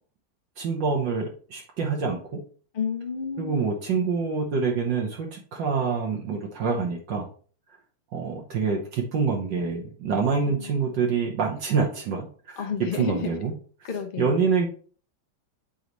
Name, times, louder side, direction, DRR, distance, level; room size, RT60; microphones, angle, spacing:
voice 1, 0.6-2.2 3.4-7.3 8.1-12.6 13.0-13.5 14.2-14.7, right 5 dB, 70° right, 1.6 m, -26 dB
voice 2, 2.7-3.7 10.3-10.9 12.6-13.3 13.8-14.4, left 6 dB, 65° left, 0.5 m, -31 dB
8.3 x 4.0 x 3.0 m
omnidirectional pair, 2.1 m